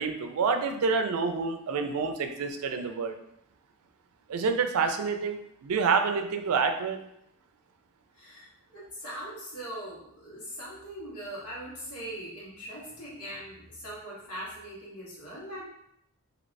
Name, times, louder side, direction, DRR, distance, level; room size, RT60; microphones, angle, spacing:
voice 1, 0.0-3.2 4.3-7.0, right 5 dB, 80° right, 7 dB, 0.4 m, -28 dB
voice 2, 8.1-15.6, right 1 dB, 90° left, -6 dB, 1.4 m, -41 dB
3.1 x 2.8 x 2.6 m, 0.75 s
head